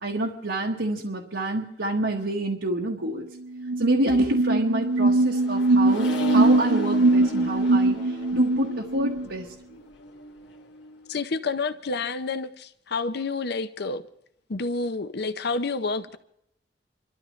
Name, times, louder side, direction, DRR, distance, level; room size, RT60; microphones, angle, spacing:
voice 1, 0.0-3.3 3.8-9.5, right 1 dB, 90° right, 1.4 m, -27 dB
sound 1, 3.2-3.3 3.5-9.3, right 2 dB, 70° right, 0.5 m, -22 dB
Accelerating revving vroom, 4.5-11.1, equal, 85° left, 1.8 m, -37 dB
voice 2, 11.1-14.0 14.5-16.2, left 3 dB, 60° left, 0.7 m, -29 dB
28.5 x 12.5 x 3.2 m
head